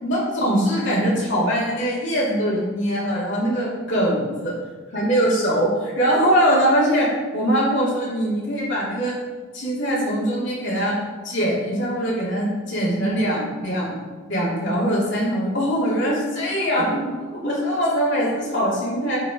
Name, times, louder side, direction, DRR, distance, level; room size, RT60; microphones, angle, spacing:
voice 1, 0.0-4.5 4.9-9.2 9.5-11.0 11.2-14.0 14.3-19.2, equal, 55° left, -6 dB, 2.8 m, -22 dB
10.5 x 5.1 x 4.9 m, 1.4 s
head